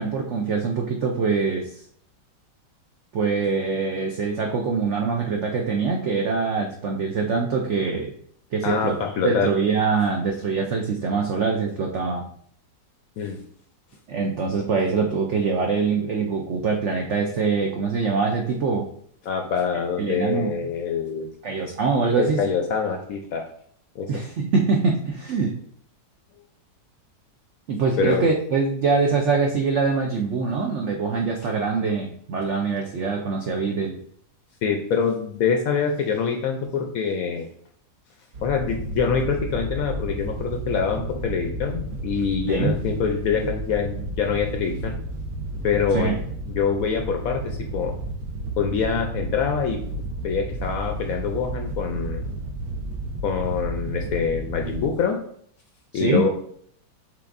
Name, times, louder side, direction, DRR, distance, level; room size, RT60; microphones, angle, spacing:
voice 1, 0.0-1.8 3.1-8.1 8.5-9.0 9.2-12.3 14.1-18.9 20.0-20.5 21.4-22.4 24.1-25.6 27.7-34.0 42.5-42.8 45.9-46.2 55.9-56.2, right 4 dB, 80° right, 1 dB, 0.6 m, -24 dB
voice 2, 8.6-9.5 13.2-13.4 19.3-21.3 22.2-23.4 24.0-24.1 28.0-28.2 34.6-37.5 38.4-44.9 45.6-46.2 46.5-47.9 48.6-49.8 50.2-52.2 53.2-55.2 55.9-56.3, left 6 dB, 70° left, 3 dB, 0.8 m, -25 dB
Wind / Boat Water vehicle, 38.3-54.9, right 2 dB, 65° right, 1.1 m, -32 dB
5.8 x 3.6 x 2.5 m, 0.62 s
omnidirectional pair, 1.9 m